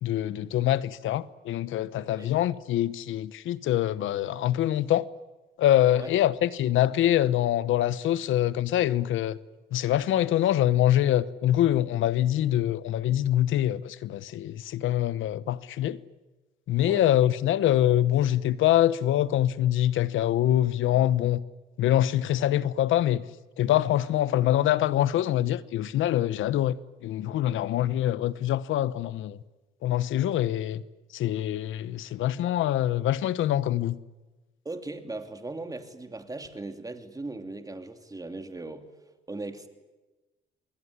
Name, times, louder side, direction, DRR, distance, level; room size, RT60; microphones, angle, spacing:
voice 1, 0.0-5.1 5.6-9.4 9.7-16.0 16.7-21.4 21.8-23.2 23.6-29.4 29.8-30.8 31.1-34.0, left 12 dB, 80° left, 1.0 m, -24 dB
voice 2, 34.6-38.9 39.3-39.7, right 2 dB, 20° right, 2.9 m, -38 dB
25.5 x 21.0 x 9.7 m
cardioid pair, 90°, 20 cm